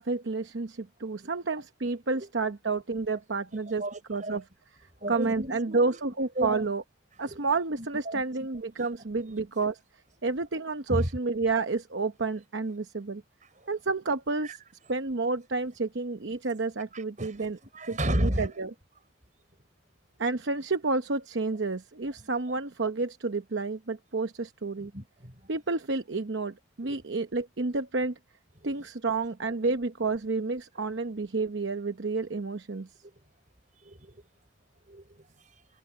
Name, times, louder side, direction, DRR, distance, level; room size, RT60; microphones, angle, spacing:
voice 1, 0.0-3.8 4.1-4.4 5.1-6.8 7.2-9.8 10.2-13.2 13.7-14.6 14.9-17.6 17.9-18.7 20.2-24.9 25.5-28.1 28.6-32.9, right 3 dB, 65° right, 0.9 m, -30 dB
voice 2, 3.5-4.4 5.0-6.0 6.4-6.7 7.2-7.4 7.8-8.2 10.9-11.1 13.5-13.7 14.4-14.6 16.9-17.4 17.7-18.6 22.2-22.3 24.8-25.4 26.8-27.0 28.6-28.7 33.0-33.1 33.8-34.2 34.9-35.3, right 1 dB, 40° right, 6.3 m, -33 dB
head